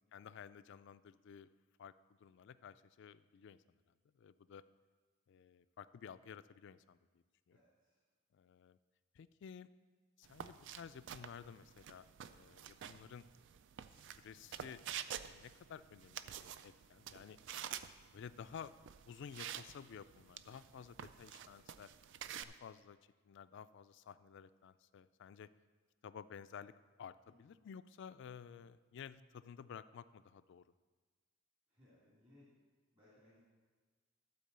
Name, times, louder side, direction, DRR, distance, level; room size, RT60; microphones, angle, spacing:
voice 1, 0.0-1.5 1.8-1.9 2.2-3.6 4.1-4.6 5.3-7.0 7.5-7.6 8.3-8.8 9.1-9.7 10.2-13.3 14.2-14.8 15.1-17.4 18.1-18.7 19.1-21.9 22.4-23.0 23.2-25.5 26.0-26.7 27.0-30.6, left 7 dB, 60° left, 14 dB, 0.3 m, -53 dB
voice 2, 7.5-8.0 27.2-27.5 31.7-32.5 32.9-33.4, left 1 dB, 30° right, -8 dB, 2.4 m, -67 dB
sound 1, 10.2-22.4, right 9 dB, 60° right, 0.4 m, -49 dB
12.0 x 4.5 x 6.7 m, 1.4 s
head